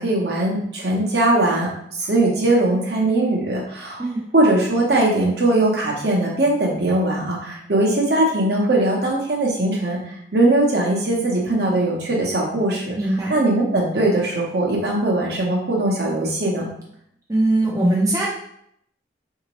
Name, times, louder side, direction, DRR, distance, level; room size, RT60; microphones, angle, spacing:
voice 1, 0.0-1.7 2.0-4.0 4.3-12.9 13.3-16.7, right 2 dB, 60° right, -2 dB, 0.9 m, -20 dB
voice 2, 13.0-13.4 17.3-18.3, right 1 dB, 20° right, -4 dB, 0.4 m, -20 dB
3.8 x 2.8 x 3.0 m, 0.71 s
head